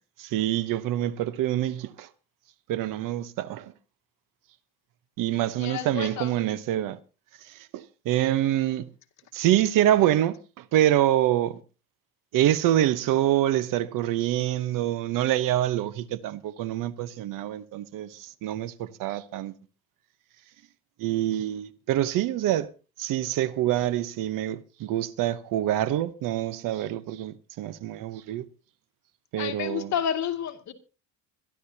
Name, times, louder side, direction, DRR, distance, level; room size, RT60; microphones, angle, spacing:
voice 1, 0.2-2.1 2.7-3.7 5.2-7.0 7.4-8.9 9.3-11.6 12.3-19.5 21.0-22.7 23.0-28.4 29.3-29.9, right 12 dB, 60° right, 1.0 m, -26 dB
voice 2, 5.6-6.3 29.4-30.7, left 9 dB, 50° left, 2.2 m, -30 dB
25.0 x 11.5 x 2.8 m
cardioid pair, 120°, 37 cm